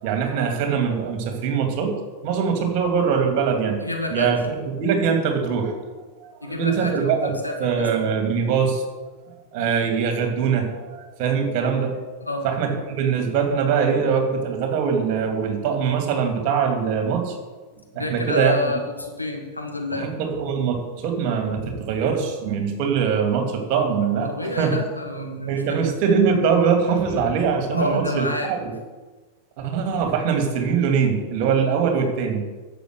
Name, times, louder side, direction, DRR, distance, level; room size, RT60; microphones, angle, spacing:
voice 1, 0.0-1.9 2.2-3.8 4.1-5.7 6.2-7.3 7.6-8.8 9.5-12.1 12.4-17.4 17.9-18.5 20.0-24.3 24.6-24.8 25.5-28.7 29.6-32.4, right 6 dB, 45° right, 4 dB, 2.5 m, -22 dB
voice 2, 3.8-4.3 6.4-8.0 12.2-12.5 17.9-20.1 24.2-25.8 27.7-28.5, left 1 dB, 85° left, 1 dB, 2.1 m, -28 dB
12.0 x 7.3 x 6.9 m, 1.3 s
figure-of-eight pair, 90°, 0 cm